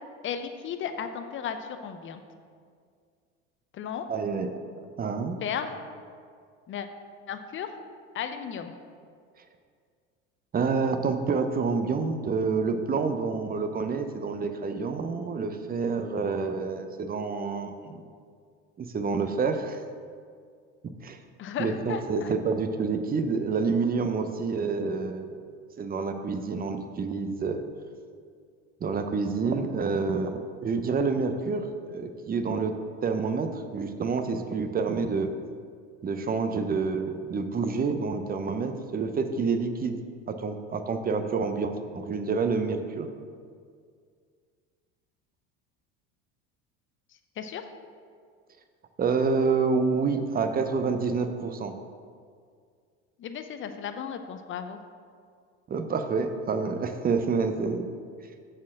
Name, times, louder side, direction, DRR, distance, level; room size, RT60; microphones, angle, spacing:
voice 1, 0.2-2.2 3.7-4.1 5.4-5.7 6.7-6.9 7.3-7.7 8.1-8.7 21.4-22.3 47.4-47.6 53.2-54.8, left 8 dB, 35° left, 8 dB, 0.7 m, -34 dB
voice 2, 4.1-4.5 5.0-5.4 10.5-18.0 18.8-19.8 21.0-21.2 21.6-25.4 25.8-27.6 28.8-32.8 33.0-35.3 36.0-40.0 40.3-43.1 49.0-51.7 55.7-57.9, right 4 dB, 25° right, 7 dB, 0.7 m, -28 dB
7.1 x 4.4 x 6.2 m, 2.1 s
hypercardioid pair, 70°, 35 cm